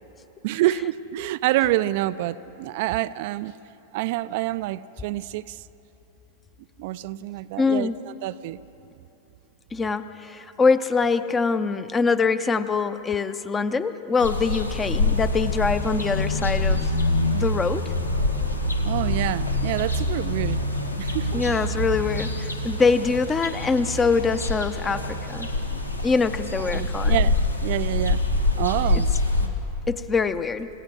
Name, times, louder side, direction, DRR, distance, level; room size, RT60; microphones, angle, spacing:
voice 1, 0.4-3.5 3.9-5.6 6.8-8.6 18.8-20.6 20.9-21.4 25.7-26.0 26.6-27.4 27.6-28.2 28.6-29.1 29.4-29.5, right 15 dB, 50° right, 14 dB, 0.5 m, -27 dB
voice 2, 7.6-7.9 9.7-16.9 17.3-17.8 21.3-25.5 26.0-27.2 29.9-30.7, left 4 dB, 15° left, 12 dB, 0.8 m, -24 dB
sound 1, 14.2-29.5, left 2 dB, 85° left, 1.8 m, -25 dB
30.0 x 16.5 x 6.3 m, 3.0 s
figure-of-eight pair, 90°, 0 cm